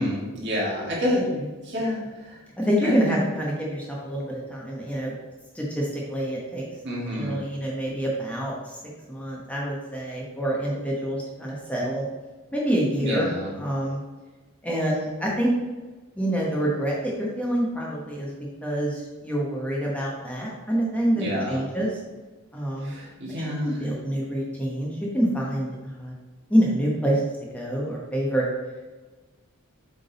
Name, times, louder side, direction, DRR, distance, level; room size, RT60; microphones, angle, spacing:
voice 1, 0.0-3.2 6.8-7.4 13.0-13.5 21.1-21.6 22.8-23.8, left 1 dB, 55° right, -4 dB, 2.2 m, -29 dB
voice 2, 2.6-5.1 5.5-6.6 7.1-8.5 9.1-12.0 12.5-13.3 13.6-14.0 14.6-15.5 16.1-18.3 18.6-21.9 22.5-22.9 23.6-26.1 26.5-27.2 27.5-28.4, right 1 dB, 5° left, -4 dB, 1.1 m, -26 dB
7.7 x 3.8 x 4.1 m, 1.3 s
head